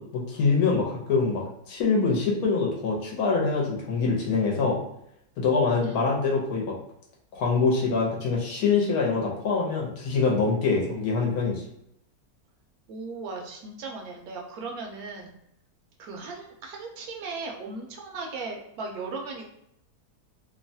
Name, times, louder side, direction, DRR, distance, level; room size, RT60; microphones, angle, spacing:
voice 1, 0.0-4.8 5.4-6.7 7.3-11.6, left 4 dB, 75° left, -2 dB, 1.2 m, -24 dB
voice 2, 12.9-15.3 16.0-19.4, right 3 dB, 75° right, 1 dB, 1.0 m, -37 dB
3.0 x 2.1 x 2.6 m, 0.76 s
omnidirectional pair, 1.7 m